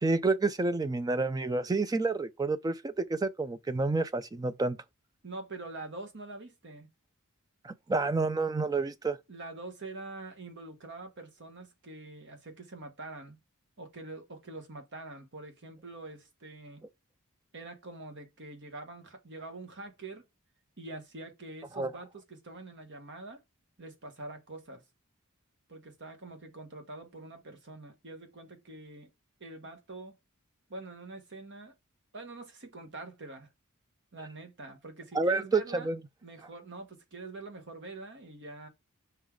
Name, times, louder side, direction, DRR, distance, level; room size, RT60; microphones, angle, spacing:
voice 1, 0.0-4.8 7.6-9.2 21.7-21.9 35.1-36.0, right 3 dB, 15° right, 0.3 m, -29 dB
voice 2, 5.2-6.9 9.3-13.4 13.8-16.8 17.5-20.2 20.8-23.4 23.8-24.8 25.7-29.1 29.4-30.1 30.7-31.7 32.1-33.5 34.1-35.9 36.2-38.7, right 2 dB, 55° right, 1.4 m, -45 dB
5.4 x 3.9 x 4.6 m
head